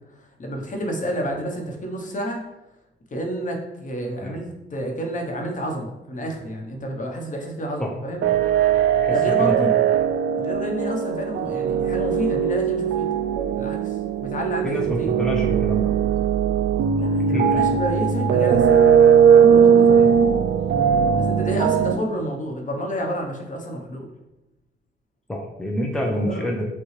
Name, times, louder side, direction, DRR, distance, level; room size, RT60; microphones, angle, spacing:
voice 1, 0.2-2.4 3.1-8.3 9.1-9.7 10.3-13.1 13.6-15.1 17.0-18.9 19.5-20.2 21.1-24.1 26.1-26.5, equal, 40° left, 2 dB, 1.0 m, -29 dB
sound 1, 8.2-21.9, right 7 dB, 65° right, 0.4 m, -19 dB
voice 2, 8.9-9.7 14.6-16.0 17.3-17.6 25.3-26.7, equal, 5° left, 0 dB, 0.6 m, -27 dB
6.3 x 2.3 x 3.2 m, 0.93 s
cardioid pair, 90°, 20 cm